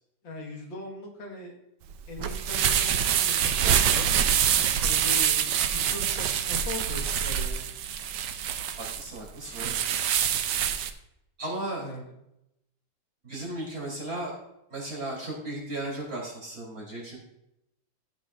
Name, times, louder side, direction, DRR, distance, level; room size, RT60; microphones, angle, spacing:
voice 1, 0.2-1.6 2.1-4.2 4.8-7.7 11.8-12.0, left 2 dB, 80° left, 0 dB, 2.4 m, -40 dB
sound 1, 1.9-10.9, right 9 dB, 70° right, 1.3 m, -25 dB
voice 2, 8.8-9.8 11.4-11.9 13.2-14.3 14.7-17.2, right 1 dB, 30° right, -3 dB, 3.5 m, -35 dB
14.5 x 7.1 x 2.5 m, 0.83 s
omnidirectional pair, 2.1 m